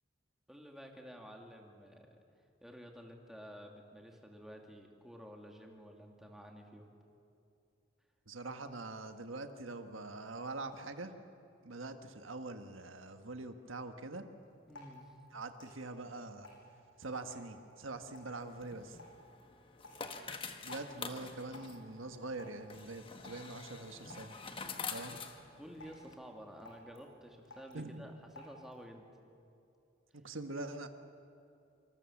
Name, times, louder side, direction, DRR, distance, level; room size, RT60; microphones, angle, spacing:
voice 1, 0.5-2.2 2.6-6.9 14.7-15.0 24.7-25.2 25.6-29.0, equal, ahead, 1 dB, 2.5 m, -52 dB
voice 2, 8.3-11.1 11.6-14.2 15.3-16.5 17.0-19.0 20.6-24.3 24.9-25.2 27.7-28.2 30.1-30.9, right 2 dB, 85° right, 7 dB, 1.5 m, -44 dB
Drip, 14.4-28.9, left 1 dB, 80° left, 7.1 m, -58 dB
sound 1, 18.5-26.2, left 5 dB, 25° left, 1.4 m, -47 dB
26.5 x 26.0 x 7.3 m, 2.6 s
head